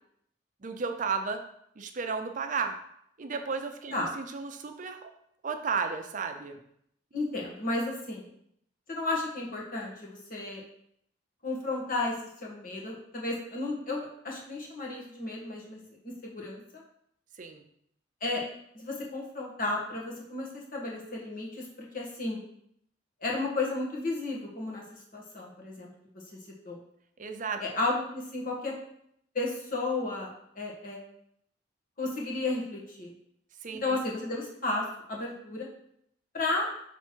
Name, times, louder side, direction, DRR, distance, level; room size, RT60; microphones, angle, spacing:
voice 1, 0.6-1.4 1.8-2.8 3.2-5.1 5.4-6.6 17.4-17.6 27.2-27.8 33.6-34.0, right 5 dB, 45° right, 6 dB, 0.6 m, -33 dB
voice 2, 7.1-8.3 8.9-10.6 11.4-12.1 12.4-15.8 16.2-16.8 18.2-18.4 18.7-21.7 21.9-22.4 23.2-24.8 25.1-25.9 26.6-26.8 27.6-28.7 29.3-30.3 30.5-31.0 32.0-33.1 33.8-35.7 36.3-36.7, left 2 dB, 50° left, -3 dB, 1.5 m, -33 dB
6.1 x 3.4 x 4.5 m, 0.71 s
head